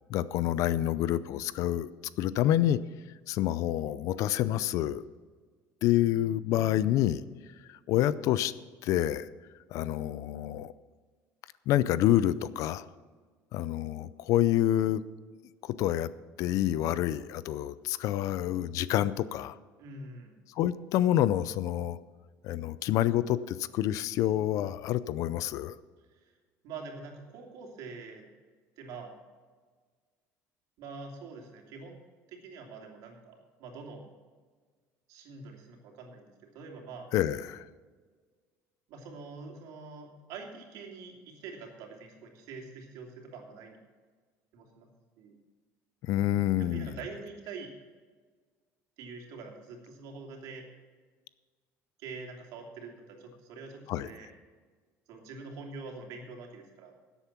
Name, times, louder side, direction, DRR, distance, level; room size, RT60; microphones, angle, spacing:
voice 1, 0.1-1.9 2.2-2.8 3.3-5.0 5.8-7.2 7.7-8.5 8.8-9.3 9.7-10.7 11.7-12.9 13.5-15.0 15.6-16.1 16.4-19.6 20.6-22.0 22.4-25.7 37.1-37.6 46.0-46.9 53.9-54.1, left 12 dB, 60° left, 16 dB, 0.5 m, -27 dB
voice 2, 19.8-20.4 26.0-26.4 26.6-28.3 28.8-29.1 30.8-32.0 32.3-34.0 35.1-37.1 38.9-43.8 44.5-44.9 45.2-45.4 46.6-47.7 49.0-50.7 52.0-54.3 55.1-56.9, right 4 dB, 70° right, 1 dB, 2.9 m, -45 dB
13.0 x 8.1 x 5.9 m, 1.5 s
cardioid pair, 165°, 6 cm